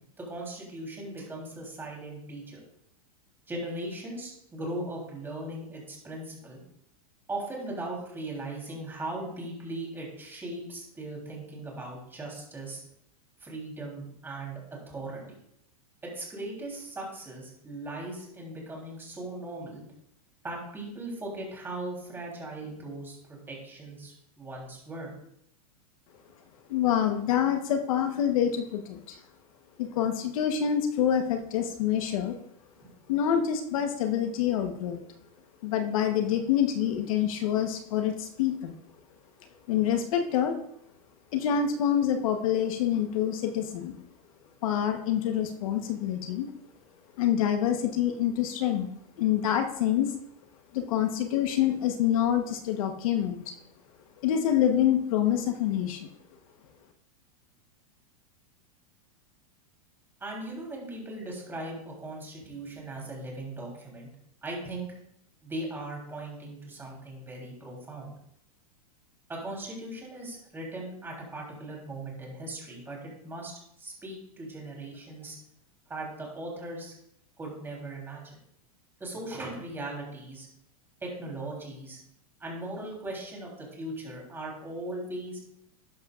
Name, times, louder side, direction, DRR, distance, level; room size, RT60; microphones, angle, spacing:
voice 1, 0.2-2.6 3.5-6.6 7.3-12.8 13.4-14.6 14.9-15.3 16.0-19.8 20.4-25.1 60.2-64.1 64.4-64.9 65.4-68.1 69.3-73.5 73.8-75.4 75.9-76.9 77.4-78.2 79.0-80.5 81.0-82.0 82.4-85.4, right 2 dB, 10° right, -2 dB, 3.5 m, -38 dB
voice 2, 26.7-29.2 29.8-32.4 33.1-35.0 35.6-38.8 39.7-40.5 41.3-43.9 44.6-46.5 47.2-48.9 49.2-50.1 50.7-53.5 54.2-56.1, left 9 dB, 65° left, 5 dB, 1.1 m, -26 dB
12.0 x 10.5 x 2.5 m, 0.75 s
supercardioid pair, 145°, 19 cm